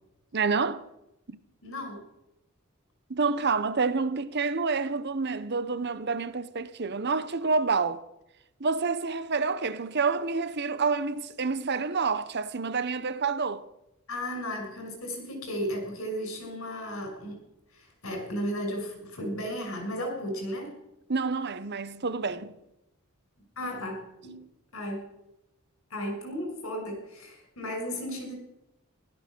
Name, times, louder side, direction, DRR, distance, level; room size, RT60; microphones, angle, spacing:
voice 1, 0.3-0.8 1.3-1.4 3.1-8.0 8.6-13.6 21.1-22.6, right 4 dB, 50° right, 1.0 m, -28 dB
voice 2, 1.6-2.0 14.1-17.4 17.7-20.8 23.6-24.4 24.7-25.0 25.9-28.3, equal, 70° left, 6.0 m, -34 dB
16.0 x 13.0 x 6.2 m
head